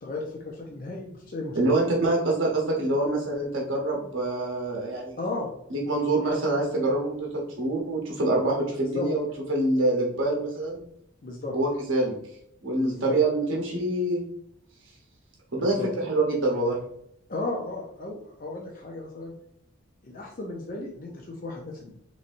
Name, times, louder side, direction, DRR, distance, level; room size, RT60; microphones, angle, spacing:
voice 1, 0.0-1.7 5.2-5.5 8.8-9.1 11.2-11.6 12.8-13.2 15.5-15.9 17.3-19.3 20.0-21.9, left 2 dB, 40° left, -2 dB, 0.5 m, -35 dB
voice 2, 1.5-5.2 5.7-10.8 11.5-12.1 12.6-14.2 15.5-16.8, right 2 dB, 70° right, -2 dB, 0.9 m, -25 dB
4.0 x 3.1 x 2.6 m, 0.75 s
head